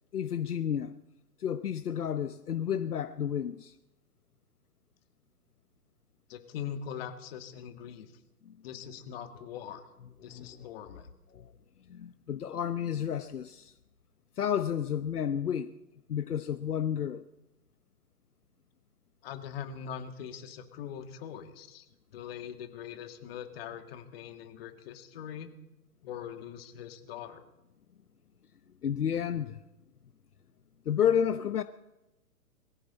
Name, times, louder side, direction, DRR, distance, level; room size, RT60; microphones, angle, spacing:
voice 1, 0.1-1.0 1.4-3.7 8.5-8.6 10.2-10.7 11.3-11.5 11.9-13.7 14.4-15.7 16.1-17.2 28.8-29.6 30.9-31.6, left 9 dB, 75° left, 0.9 m, -31 dB
voice 2, 6.3-8.1 8.6-9.9 10.2-11.1 19.2-21.9 22.1-25.5 26.0-27.4, left 8 dB, 40° left, 2.0 m, -42 dB
22.5 x 15.0 x 4.3 m
figure-of-eight pair, 125°, 46 cm